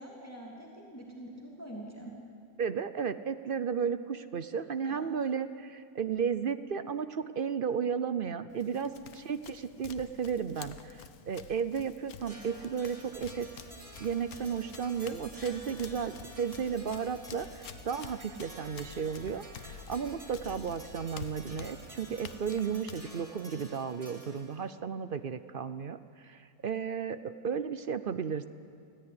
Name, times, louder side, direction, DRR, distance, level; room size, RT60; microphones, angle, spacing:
voice 1, 0.0-2.1 4.8-5.1 8.8-8.9, right 1 dB, 10° left, -1 dB, 2.8 m, -45 dB
voice 2, 2.6-8.9 9.2-13.5 14.0-28.5, right 7 dB, 55° right, 12 dB, 0.6 m, -34 dB
Run, 8.5-23.8, left 9 dB, 75° left, 1.3 m, -50 dB
sound 1, 12.3-24.7, right 1 dB, 25° right, 2.4 m, -51 dB
sound 2, 13.0-22.5, equal, 30° left, 4.8 m, -55 dB
24.5 x 15.5 x 9.7 m, 2.4 s
omnidirectional pair, 1.6 m